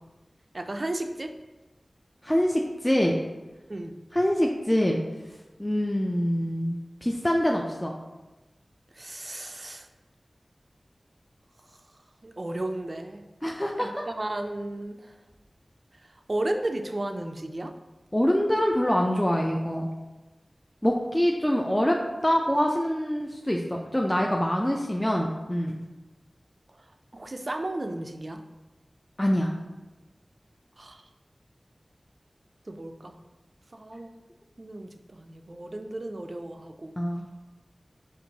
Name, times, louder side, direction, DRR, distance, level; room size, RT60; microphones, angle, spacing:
voice 1, 0.5-1.3 3.7-3.9 8.9-9.9 12.2-13.2 13.8-15.1 16.3-17.7 27.1-28.4 30.8-31.0 32.7-33.2 33.7-34.1 34.6-37.0, right 1 dB, 55° right, 5 dB, 0.3 m, -34 dB
voice 2, 2.2-3.2 4.1-5.0 5.6-6.8 7.0-7.9 13.4-13.9 18.1-19.9 20.8-25.8 29.2-29.5 37.0-37.2, equal, 20° left, 0 dB, 0.4 m, -25 dB
4.4 x 2.9 x 2.7 m, 1.1 s
wide cardioid pair, 40°, 0 cm